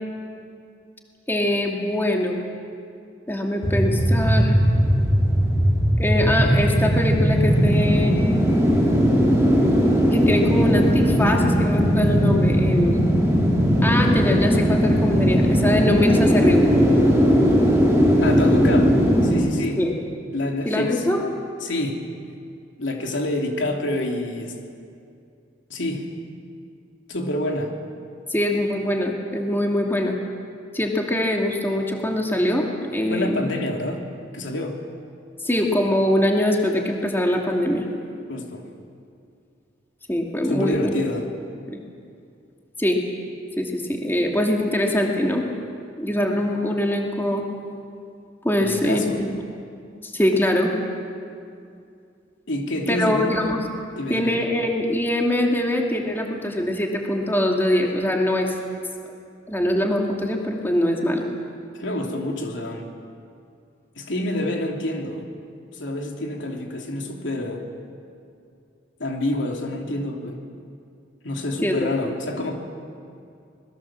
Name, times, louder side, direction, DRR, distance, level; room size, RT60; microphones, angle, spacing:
voice 1, 1.3-2.4 3.3-4.6 6.0-8.2 10.1-13.0 13.8-16.6 19.8-19.9 20.7-21.2 28.3-30.2 30.7-32.7 32.9-33.4 35.4-37.8 40.1-40.9 41.7-41.8 42.8-43.0 43.6-45.4 46.0-47.4 48.4-49.3 50.0-50.7 52.9-53.6 54.1-58.5 59.5-61.2 71.6-71.9, left 1 dB, 10° left, 0 dB, 2.4 m, -23 dB
sound 1, 3.6-19.3, equal, 15° right, 4.9 m, -18 dB
voice 2, 18.2-19.8 20.3-21.0 21.6-22.0 22.8-24.6 25.7-26.1 27.1-27.7 33.1-34.0 34.3-34.8 38.3-38.7 40.5-41.3 48.6-49.2 52.5-53.4 53.9-54.4 61.7-62.9 64.0-65.3 65.7-67.6 69.0-70.4 71.2-72.5, left 1 dB, 80° left, 1 dB, 3.0 m, -27 dB
26.0 x 21.0 x 7.5 m, 2.4 s
head